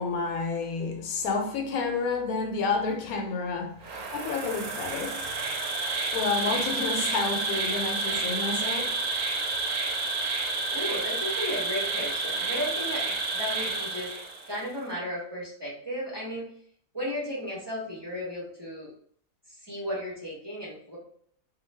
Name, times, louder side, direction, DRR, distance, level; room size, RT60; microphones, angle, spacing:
voice 1, 0.0-5.3 6.1-9.0, left 4 dB, 85° left, 1.1 m, -30 dB
Insect, 3.8-14.6, right 3 dB, 85° right, 1.1 m, -30 dB
voice 2, 10.7-14.1 14.5-16.5 16.9-18.9 19.5-21.0, equal, 20° right, 0.8 m, -34 dB
2.5 x 2.3 x 3.2 m
omnidirectional pair, 1.5 m